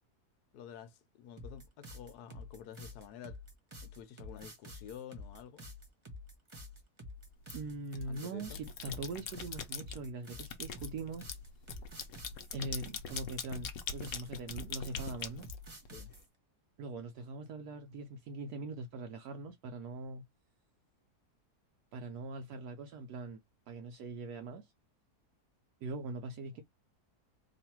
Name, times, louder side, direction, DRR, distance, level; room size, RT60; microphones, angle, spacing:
voice 1, 0.5-3.4 3.8-5.7 8.0-8.6 15.9-16.1, left 8 dB, 80° left, 1.2 m, -50 dB
sound 1, 1.4-16.3, left 2 dB, 25° right, 0.8 m, -49 dB
sound 2, 7.5-8.0 8.4-10.0 10.4-16.1, left 6 dB, 60° left, 1.0 m, -42 dB
voice 2, 7.5-11.3 12.5-15.5 16.8-20.2 21.9-23.4 23.7-24.7 25.8-26.6, right 3 dB, 75° right, 1.1 m, -42 dB
3.1 x 2.5 x 4.3 m
omnidirectional pair, 1.7 m